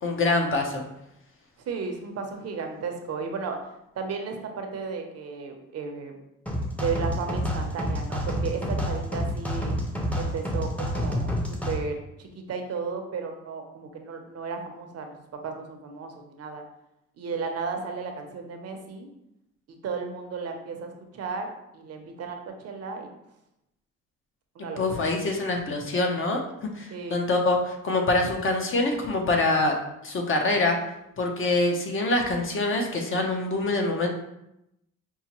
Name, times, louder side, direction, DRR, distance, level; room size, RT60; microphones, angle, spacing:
voice 1, 0.0-0.8 24.8-29.8 30.0-30.8 31.2-34.1, left 2 dB, 45° left, 2 dB, 0.8 m, -25 dB
voice 2, 1.7-3.6 4.0-6.1 6.8-9.7 10.1-11.3 11.6-16.6 17.2-19.1 19.7-21.5 21.7-23.1 24.5-24.8 26.9-27.2, right 5 dB, 55° right, 4 dB, 0.7 m, -34 dB
sound 1, 6.5-11.8, equal, 5° left, 0.6 m, -28 dB
5.4 x 2.1 x 2.9 m, 0.85 s
cardioid pair, 90°, 30 cm